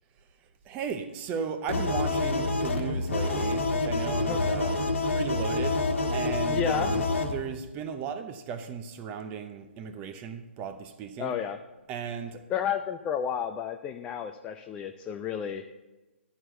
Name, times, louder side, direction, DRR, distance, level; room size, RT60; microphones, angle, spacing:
voice 1, 0.7-4.8 5.1-5.8 6.1-11.3 11.9-12.4, right 6 dB, 20° right, 0.7 m, -36 dB
sound 1, 1.7-7.3, left 3 dB, 80° left, 1.4 m, -27 dB
voice 2, 6.5-6.9 11.2-11.6 12.5-15.6, left 8 dB, 15° left, 0.3 m, -31 dB
11.0 x 4.7 x 7.8 m
hypercardioid pair, 145°, 7 cm